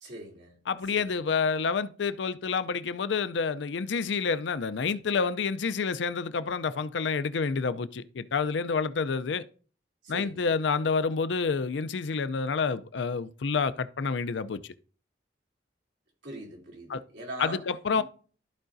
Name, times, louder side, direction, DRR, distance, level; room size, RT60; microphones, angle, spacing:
voice 1, 0.0-0.6 0.9-1.1 10.0-10.5 16.2-17.7 17.9-18.0, right 1 dB, 70° right, 2.9 m, -41 dB
voice 2, 0.7-9.4 10.1-14.6 16.9-17.0 17.4-18.0, left 5 dB, 75° left, 0.5 m, -28 dB
14.0 x 4.8 x 2.6 m
head